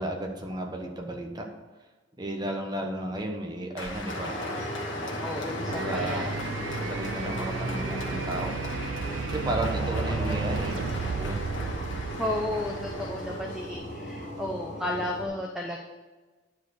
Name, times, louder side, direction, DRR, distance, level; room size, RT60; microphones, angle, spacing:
voice 1, 0.0-1.5 2.2-4.5 5.7-6.3 6.8-8.6 9.3-10.8 11.1-11.4, right 1 dB, 20° right, 2 dB, 1.1 m, -33 dB
Applause, 3.8-13.8, left 3 dB, 75° left, 1.6 m, -41 dB
sound 1, 4.0-15.3, equal, 40° left, 2.7 m, -36 dB
voice 2, 5.2-6.4 10.2-10.5 12.1-15.8, left 1 dB, 5° right, 0 dB, 0.7 m, -33 dB
sound 2, 5.7-13.6, right 5 dB, 65° right, 0.3 m, -34 dB
10.0 x 4.8 x 6.6 m, 1.3 s
head